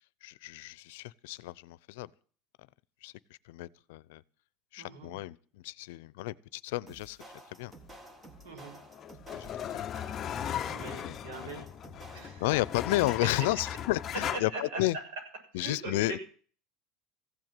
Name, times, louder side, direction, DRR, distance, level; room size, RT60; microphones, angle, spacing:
voice 1, 0.2-2.1 3.0-4.2 4.7-7.2 7.5-7.7 9.3-9.9 11.0-11.6 12.4-15.0 15.5-16.2, left 18 dB, 85° left, 0.6 m, -32 dB
voice 2, 4.8-5.1 8.4-8.8 10.7-11.7 12.1-12.5 14.3-14.8 15.5-15.9, right 3 dB, 85° right, 6.7 m, -41 dB
sound 1, 6.9-12.6, right 1 dB, 15° right, 1.6 m, -52 dB
sound 2, 8.5-14.4, left 9 dB, 30° left, 0.7 m, -37 dB
15.5 x 8.0 x 9.1 m
supercardioid pair, 150°, 0 cm